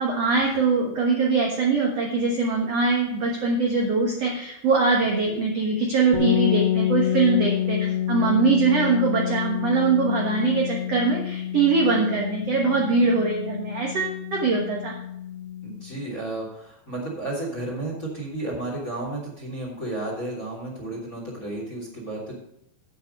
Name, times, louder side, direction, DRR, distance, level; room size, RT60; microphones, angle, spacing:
voice 1, 0.0-15.0, right 4 dB, 70° right, -1 dB, 1.5 m, -22 dB
sound 1, 6.1-15.9, left 10 dB, 35° right, 1.9 m, -28 dB
voice 2, 15.6-22.3, right 2 dB, 20° left, -1 dB, 3.1 m, -32 dB
9.3 x 8.5 x 5.3 m, 0.76 s
omnidirectional pair, 5.0 m